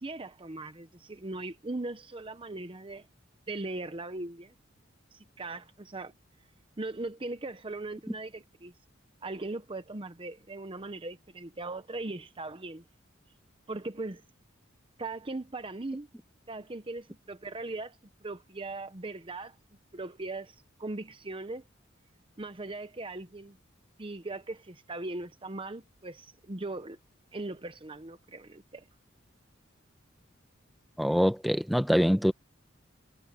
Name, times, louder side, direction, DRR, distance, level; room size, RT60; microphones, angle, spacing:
voice 1, 0.0-3.1 3.5-4.5 5.1-6.1 6.8-8.7 9.2-12.8 13.7-14.2 15.0-16.1 16.5-18.0 18.2-19.6 19.9-21.6 22.4-23.6 24.0-27.0 27.3-28.8, right 2 dB, 25° right, 0.9 m, -39 dB
voice 2, 31.0-32.3, equal, ahead, 1.1 m, -24 dB
head